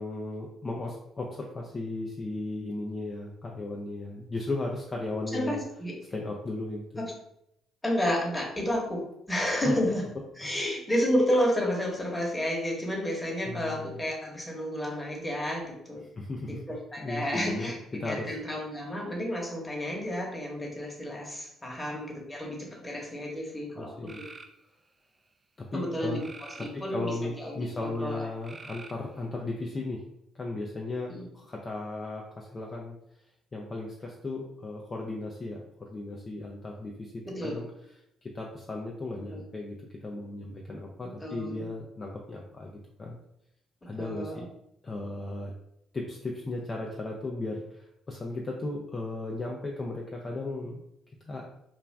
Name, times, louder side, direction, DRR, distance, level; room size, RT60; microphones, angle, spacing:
voice 1, 0.0-5.6 6.1-7.0 9.6-9.8 10.4-10.6 13.5-14.0 16.2-16.6 17.0-18.3 23.7-24.2 25.6-26.2 26.6-30.0 30.3-33.0 33.5-37.7 38.2-43.2 43.9-44.5 44.8-45.5 45.9-50.8 51.2-51.5, left 2 dB, 35° left, -1 dB, 0.4 m, -36 dB
voice 2, 5.3-5.9 7.0-7.1 7.8-10.1 10.4-16.0 16.5-24.2 25.7-28.2 31.1-31.3 37.2-37.6 39.2-39.4 41.0-41.7 44.0-44.5, equal, 15° left, -2 dB, 1.0 m, -31 dB
sound 1, 24.1-24.5 26.2-27.2 28.4-29.3, right 3 dB, 30° right, 0.3 m, -46 dB
2.4 x 2.2 x 3.3 m, 0.80 s
hypercardioid pair, 55°, 0 cm